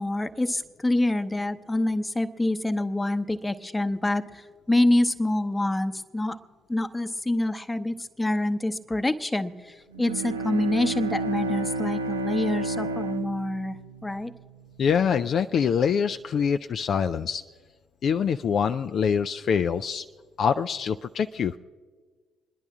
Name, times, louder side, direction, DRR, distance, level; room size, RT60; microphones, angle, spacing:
voice 1, 0.0-6.4 6.7-14.3, left 1 dB, 15° left, 10 dB, 0.9 m, -26 dB
Bowed string instrument, 9.9-14.8, right 2 dB, 90° right, 0.5 m, -31 dB
voice 2, 14.8-17.4 18.0-20.0 20.4-21.5, left 7 dB, 50° left, 8 dB, 0.3 m, -24 dB
26.0 x 11.0 x 3.6 m, 1.5 s
figure-of-eight pair, 50°, 0 cm